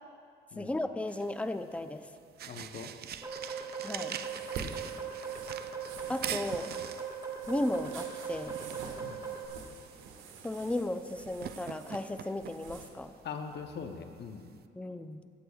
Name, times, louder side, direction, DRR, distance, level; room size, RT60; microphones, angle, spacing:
voice 1, 0.6-2.1 3.8-4.2 6.1-6.7 7.5-8.6 10.4-13.1 14.8-15.2, left 1 dB, 5° left, 9 dB, 0.5 m, -35 dB
sound 1, 1.1-14.7, right 9 dB, 55° right, 0.4 m, -45 dB
voice 2, 2.5-2.9 9.0-9.2 13.2-14.5, left 6 dB, 60° left, 5 dB, 0.8 m, -41 dB
sound 2, 3.2-9.5, right 6 dB, 20° right, 1.8 m, -40 dB
sound 3, 3.9-12.9, right 5 dB, 85° right, 1.2 m, -48 dB
24.0 x 8.2 x 2.4 m, 2.3 s
cardioid pair, 90°, 20 cm